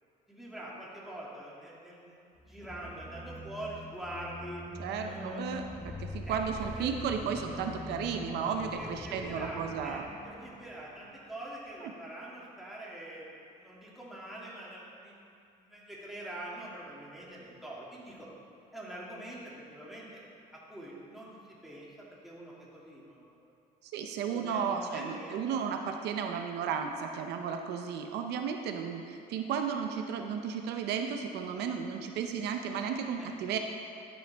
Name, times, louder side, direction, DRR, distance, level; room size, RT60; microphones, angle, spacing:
voice 1, 0.3-4.7 5.0-5.4 6.3-6.9 8.7-18.3 18.7-20.2 20.5-23.5 24.3-25.6 33.2-33.3, right 1 dB, ahead, -7 dB, 2.4 m, -45 dB
sound 1, 2.4-11.2, left 2 dB, 15° left, 0.9 m, -44 dB
voice 2, 4.8-10.0 11.8-11.9 23.8-33.6, right 7 dB, 80° right, 4 dB, 0.7 m, -34 dB
12.5 x 7.8 x 3.5 m, 2.5 s
cardioid pair, 110°, 17 cm